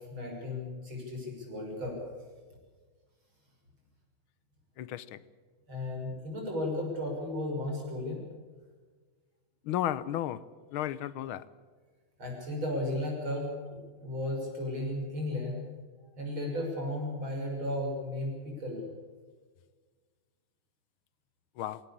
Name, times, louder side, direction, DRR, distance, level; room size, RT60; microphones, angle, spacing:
voice 1, 0.0-2.0 5.7-8.2 12.2-13.5 14.0-15.6 16.2-18.8, left 1 dB, 75° right, 0 dB, 7.1 m, -34 dB
voice 2, 4.8-5.2 9.6-10.4 10.7-11.4 21.6-21.8, left 12 dB, 85° left, 17 dB, 1.6 m, -33 dB
21.0 x 18.0 x 8.6 m, 1.5 s
omnidirectional pair, 2.2 m